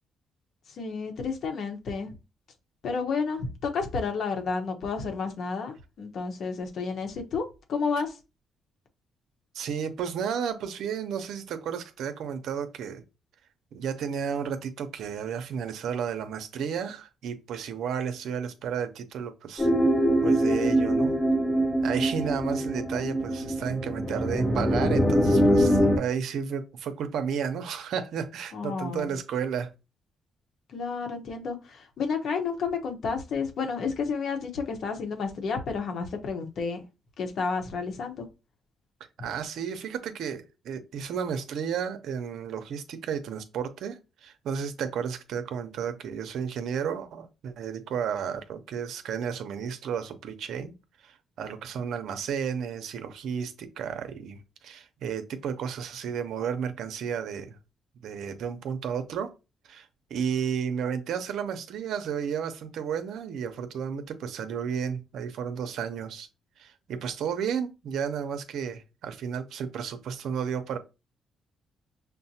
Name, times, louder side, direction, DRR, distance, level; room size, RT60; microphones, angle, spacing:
voice 1, 0.7-2.1 2.8-7.4 7.7-8.1 28.5-29.1 30.7-36.8 37.2-38.2, left 5 dB, 65° left, 0.9 m, -31 dB
voice 2, 9.5-13.0 13.7-19.7 20.2-21.2 21.8-29.7 39.2-50.7 51.0-57.6 58.0-59.3 59.6-66.3 66.6-70.8, right 7 dB, 75° right, 0.6 m, -32 dB
sound 1, 19.6-26.0, equal, 15° left, 1.0 m, -23 dB
6.0 x 2.1 x 2.7 m
cardioid pair, 90°, 0 cm